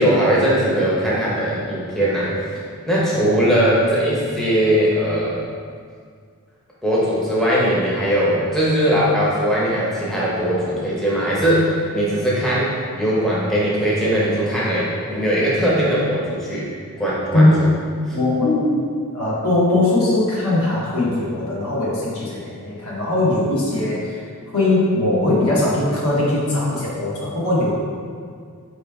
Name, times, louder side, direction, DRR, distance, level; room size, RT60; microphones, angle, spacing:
voice 1, 0.0-5.4 6.8-16.7 17.0-17.7 18.1-18.2, equal, ahead, -8 dB, 0.7 m, -20 dB
voice 2, 18.1-18.9 19.1-24.2 24.5-27.7, left 2 dB, 70° left, -6 dB, 1.0 m, -20 dB
4.4 x 3.0 x 3.4 m, 2.1 s
head